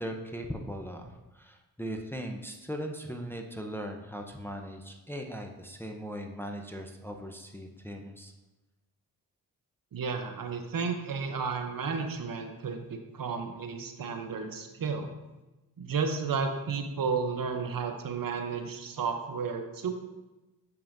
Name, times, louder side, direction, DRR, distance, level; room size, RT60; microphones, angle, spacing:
voice 1, 0.0-8.3, equal, 5° left, 2 dB, 0.7 m, -39 dB
voice 2, 9.9-15.1 15.8-19.9, right 5 dB, 55° right, 5 dB, 0.9 m, -32 dB
6.9 x 5.5 x 2.7 m, 1.1 s
cardioid pair, 55°, 42 cm